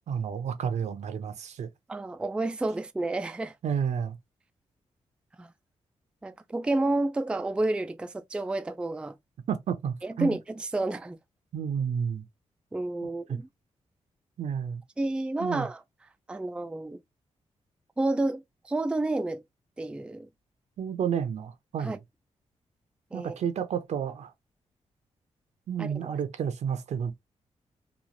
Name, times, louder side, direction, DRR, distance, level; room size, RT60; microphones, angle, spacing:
voice 1, 0.1-1.7 3.6-4.2 9.5-10.4 11.5-12.2 13.3-13.4 14.4-14.8 15.4-15.7 20.8-22.0 23.1-24.3 25.7-27.1, right 7 dB, 75° right, 0.7 m, -31 dB
voice 2, 1.9-3.6 5.4-5.5 6.2-9.2 10.0-11.2 12.7-13.4 15.0-15.8 16.3-17.0 18.0-19.4 19.8-20.3 21.8-22.0 23.1-23.4 25.8-26.2, right 2 dB, 10° right, 0.3 m, -30 dB
3.1 x 2.4 x 2.5 m
cardioid pair, 105°, 12 cm